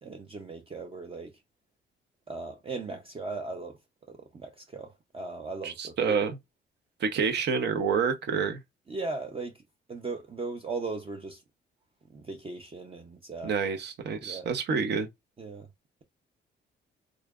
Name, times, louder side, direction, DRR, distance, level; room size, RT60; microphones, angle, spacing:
voice 1, 0.0-1.4 2.3-3.8 4.1-6.2 8.9-9.6 9.9-11.4 12.1-13.5 14.2-14.5 15.4-15.7, right 3 dB, 30° right, 0.6 m, -38 dB
voice 2, 5.6-6.3 7.0-8.6 13.4-15.1, right 6 dB, 60° right, 0.8 m, -28 dB
3.7 x 3.2 x 2.3 m
cardioid pair, 90°, 20 cm